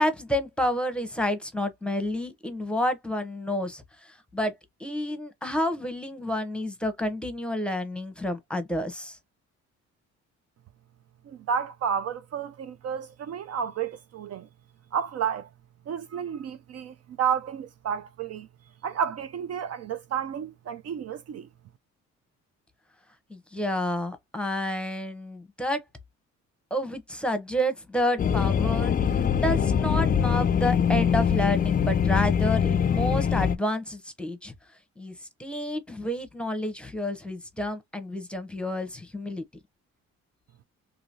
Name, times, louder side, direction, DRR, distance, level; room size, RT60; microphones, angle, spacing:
voice 1, 0.0-9.2 23.3-25.8 26.7-34.5 35.0-39.4, left 1 dB, 5° left, 0.9 m, -30 dB
voice 2, 11.3-14.5 14.9-15.5 15.9-18.5 18.8-21.5, right 8 dB, 55° right, 0.5 m, -31 dB
sound 1, 28.2-33.6, left 7 dB, 30° left, 0.4 m, -23 dB
3.0 x 2.7 x 2.7 m
cardioid pair, 90°, 30 cm